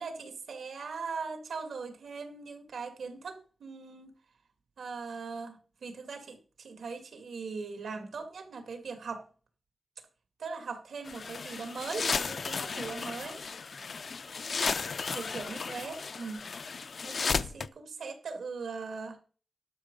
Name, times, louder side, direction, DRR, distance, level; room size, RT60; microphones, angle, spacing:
voice 1, 0.0-4.2 4.8-9.2 10.4-13.4 15.1-16.5 17.0-19.2, right 4 dB, 80° right, 7 dB, 2.1 m, -40 dB
sound 1, 11.1-17.7, left 5 dB, 50° left, 0.4 m, -34 dB
12.0 x 6.3 x 5.3 m, 0.39 s
wide cardioid pair, 165°, 0 cm